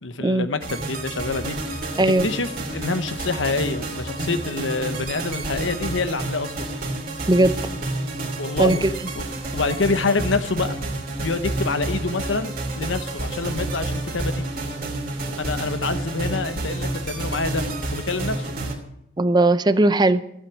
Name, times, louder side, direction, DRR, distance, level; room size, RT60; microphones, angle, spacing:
voice 1, 0.0-6.7 8.4-8.8 9.2-9.3 9.5-10.8 11.2-14.5 15.4-17.7 17.9-18.6, left 3 dB, 70° left, 10 dB, 1.0 m, -26 dB
sound 1, 0.6-18.7, right 2 dB, 50° right, 2.8 m, -29 dB
voice 2, 8.6-8.9 19.2-20.2, right 2 dB, 20° right, 12 dB, 0.5 m, -18 dB
15.0 x 8.3 x 6.2 m, 0.77 s
head